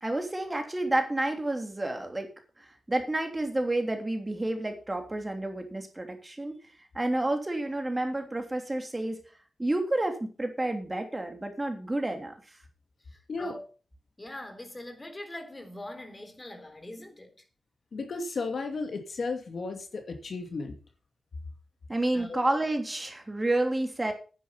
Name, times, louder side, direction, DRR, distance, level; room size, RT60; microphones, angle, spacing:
voice 1, 0.0-2.3 2.6-6.6 6.9-9.2 9.6-12.6 21.9-24.1, right 1 dB, 20° right, 3.1 m, -30 dB
voice 2, 13.1-13.6 14.2-17.4 22.1-22.4, left 1 dB, 20° left, 3.8 m, -43 dB
voice 3, 17.9-20.8 22.3-22.5, left 3 dB, 65° left, 2.5 m, -34 dB
10.0 x 10.0 x 5.8 m
cardioid pair, 75°, 0 cm